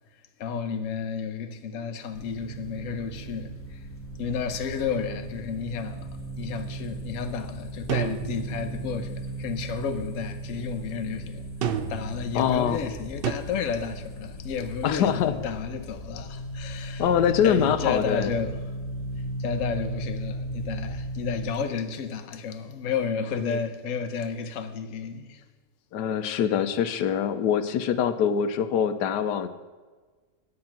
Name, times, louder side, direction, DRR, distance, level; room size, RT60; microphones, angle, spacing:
voice 1, 0.4-3.9 4.2-17.1 17.4-18.8 19.4-25.4 26.3-26.4, left 6 dB, 55° left, 1.1 m, -32 dB
sound 1, 2.1-21.5, right 1 dB, 10° left, 1.2 m, -37 dB
sound 2, 7.9-8.9 11.6-12.2 13.2-13.3, right 8 dB, 70° right, 0.5 m, -29 dB
voice 2, 12.3-12.8 14.8-15.3 17.0-18.3 23.4-23.6 25.9-29.5, left 8 dB, 85° left, 1.3 m, -24 dB
9.7 x 8.6 x 5.8 m
omnidirectional pair, 1.7 m